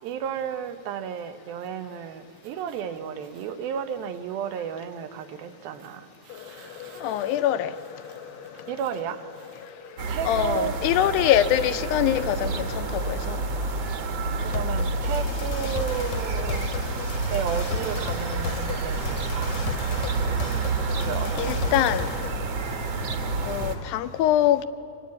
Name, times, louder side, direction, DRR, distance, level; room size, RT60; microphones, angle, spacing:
voice 1, 0.0-6.0 8.7-9.2 10.1-10.8 14.5-16.7 17.3-19.6 21.0-21.6, right 8 dB, 85° right, 2.8 m, -32 dB
sound 1, 6.3-22.3, left 5 dB, 65° left, 1.8 m, -37 dB
voice 2, 7.0-7.7 10.3-13.4 21.4-22.1 23.4-24.7, left 11 dB, 85° left, 2.5 m, -23 dB
sound 2, 10.0-23.8, right 3 dB, 50° right, 2.1 m, -29 dB
24.5 x 19.0 x 8.5 m
omnidirectional pair, 4.2 m